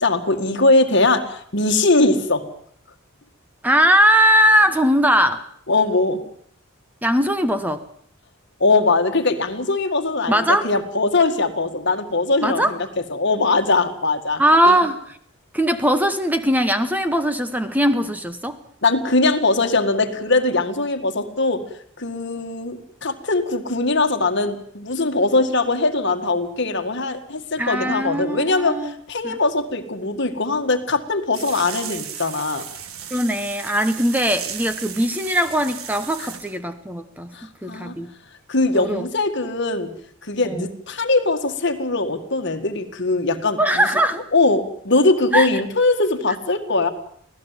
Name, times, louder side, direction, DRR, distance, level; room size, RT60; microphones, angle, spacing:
voice 1, 0.0-2.5 5.7-6.2 8.6-12.8 13.1-14.8 18.8-21.6 22.0-32.7 36.2-36.3 37.3-38.0 38.5-39.9 40.2-43.9 44.3-46.9, left 3 dB, 55° left, 7 dB, 1.9 m, -21 dB
voice 2, 3.6-5.5 7.0-7.8 10.3-10.7 12.4-12.7 14.4-15.2 15.5-18.6 27.6-28.9 29.2-29.4 33.1-38.1 38.7-39.1 40.4-40.7 43.6-44.2 45.3-45.5, equal, 10° right, 10 dB, 0.9 m, -20 dB
sound 1, 31.3-36.6, right 8 dB, 85° right, 1.6 m, -35 dB
25.0 x 17.0 x 7.5 m, 0.65 s
head